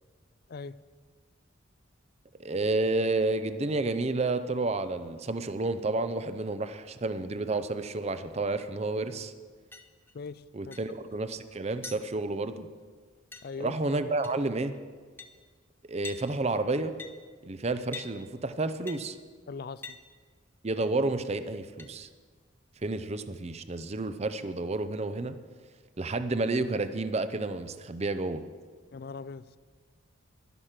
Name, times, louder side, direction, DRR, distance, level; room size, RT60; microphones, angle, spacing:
voice 1, 2.4-9.3 10.5-12.7 13.6-14.7 15.9-16.9 17.4-19.2 20.6-22.1 22.8-25.4 26.0-28.4, right 2 dB, 30° right, 11 dB, 0.6 m, -30 dB
sound 1, 9.7-10.1 10.7-10.9 11.1-11.2 11.8-12.0 13.3-13.7 14.2-14.5 14.7-14.8 15.2-15.3 16.0-16.2 17.0-17.1 17.9-18.1 18.9-19.0 19.8-20.0 20.8-20.9 21.8-21.9, left 5 dB, 10° left, 0.7 m, -43 dB
voice 2, 10.1-10.8 13.4-13.8 19.5-20.0 28.9-29.6, left 4 dB, 50° left, 16 dB, 0.4 m, -40 dB
11.5 x 11.0 x 5.9 m, 1.5 s
head